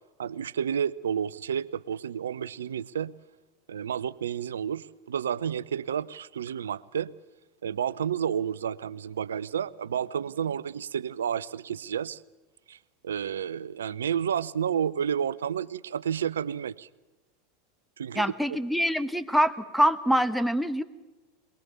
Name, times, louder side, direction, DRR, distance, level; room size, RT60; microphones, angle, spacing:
voice 1, 0.2-3.1 3.7-7.1 7.6-12.2 12.7-12.8 13.0-16.9 18.0-18.6, right 8 dB, 75° right, 0.6 m, -31 dB
voice 2, 18.1-20.8, equal, ahead, 1.2 m, -25 dB
22.5 x 20.5 x 6.9 m
figure-of-eight pair, 85°, 0 cm